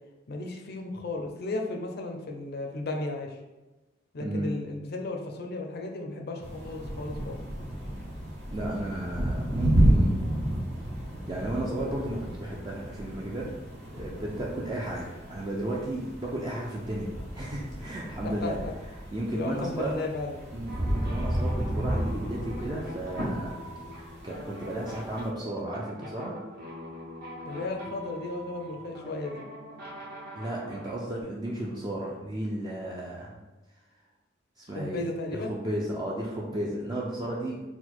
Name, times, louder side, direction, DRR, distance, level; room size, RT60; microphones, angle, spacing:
voice 1, 0.3-3.4 4.1-7.4 18.4-18.7 19.3-20.4 27.4-29.4 34.7-35.5, left 2 dB, 55° left, 2 dB, 0.5 m, -34 dB
sound 1, 6.4-25.3, right 1 dB, 85° right, 1.3 m, -31 dB
voice 2, 8.5-10.3 11.3-13.5 13.8-18.6 19.1-20.0 20.5-23.6 24.2-26.3 30.4-33.4 34.6-35.0 35.3-37.6, right 1 dB, 20° right, -3 dB, 0.4 m, -33 dB
sound 2, 20.7-31.2, equal, 55° right, 1.1 m, -43 dB
4.2 x 2.2 x 4.3 m, 1.1 s
head